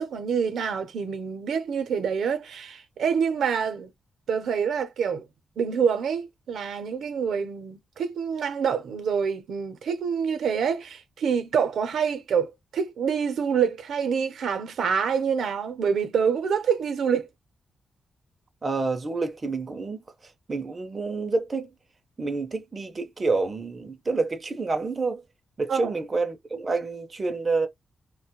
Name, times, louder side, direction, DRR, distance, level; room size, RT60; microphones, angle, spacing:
voice 1, 0.0-3.9 4.3-5.2 5.6-17.3 25.7-25.9, right 6 dB, 75° right, 0.6 m, -26 dB
voice 2, 18.6-20.0 20.5-21.7 22.2-25.2 25.6-27.7, right 3 dB, 25° right, 0.4 m, -28 dB
3.1 x 2.1 x 2.8 m
wide cardioid pair, 160°, 0 cm